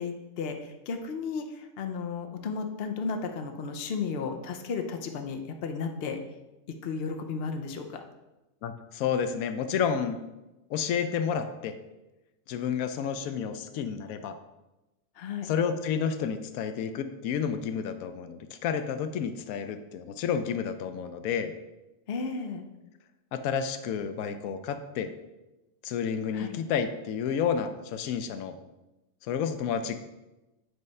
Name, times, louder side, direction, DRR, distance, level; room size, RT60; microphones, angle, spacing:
voice 1, 0.0-6.2 6.8-8.0 15.2-15.5 22.1-22.6 26.3-26.6, left 5 dB, 55° left, 5 dB, 0.8 m, -34 dB
voice 2, 8.6-10.2 10.7-11.8 12.5-14.4 15.4-21.5 23.3-25.1 25.8-28.6 29.2-30.0, left 7 dB, 85° left, 9 dB, 1.0 m, -30 dB
7.9 x 3.2 x 5.3 m, 1.0 s
omnidirectional pair, 1.4 m